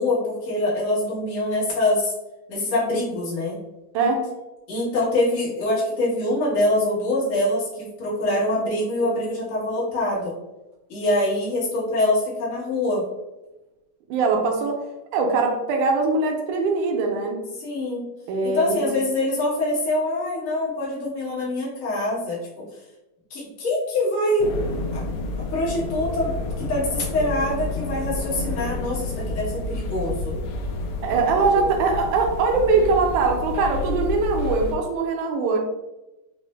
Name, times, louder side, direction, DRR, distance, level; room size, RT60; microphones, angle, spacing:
voice 1, 0.0-2.1 2.5-3.6 4.7-10.3 10.9-13.0 17.6-18.0 18.4-22.6 23.3-24.5 24.9-25.0 25.5-30.3 31.5-31.8, left 1 dB, 70° left, -8 dB, 0.7 m, -24 dB
voice 2, 3.9-4.3 14.1-14.8 15.1-17.4 18.3-19.0 31.0-35.6, right 4 dB, 80° right, 2 dB, 2.0 m, -22 dB
sound 1, 24.4-34.7, left 2 dB, 85° left, 1.5 m, -30 dB
5.0 x 2.0 x 3.1 m, 1.0 s
omnidirectional pair, 3.6 m